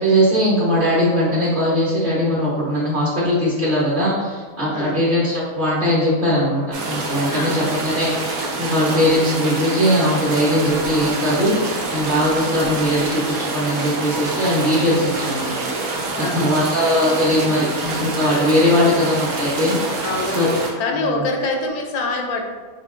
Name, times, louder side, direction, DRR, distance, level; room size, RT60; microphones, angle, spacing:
voice 1, 0.0-13.2 13.5-15.5 16.2-20.0 20.3-20.5 21.1-21.2, equal, 35° right, -8 dB, 1.1 m, -20 dB
voice 2, 4.7-5.0 7.3-7.9 16.1-16.8 18.7-19.0 20.0-22.4, left 3 dB, 85° left, 2 dB, 1.1 m, -26 dB
sound 1, 6.7-20.7, right 2 dB, 75° right, 1.1 m, -26 dB
4.5 x 2.6 x 2.5 m, 1.4 s
omnidirectional pair, 1.6 m